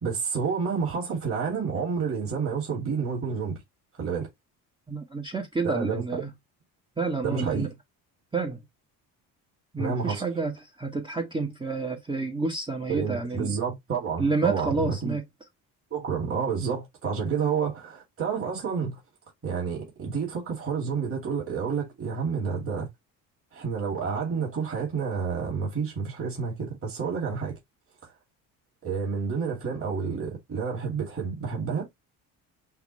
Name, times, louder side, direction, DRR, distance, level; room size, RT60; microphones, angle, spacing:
voice 1, 0.0-3.6 4.0-4.3 5.6-6.2 7.2-7.7 9.8-10.2 12.9-15.2 15.9-19.0 19.4-22.9 23.5-27.6 28.8-31.9, right 6 dB, 35° right, 2.5 m, -29 dB
voice 2, 4.9-6.3 7.0-7.7 8.3-8.6 9.7-13.5 14.2-15.2, right 3 dB, 15° right, 1.0 m, -29 dB
5.8 x 2.5 x 3.0 m
cardioid pair, 105°, 38 cm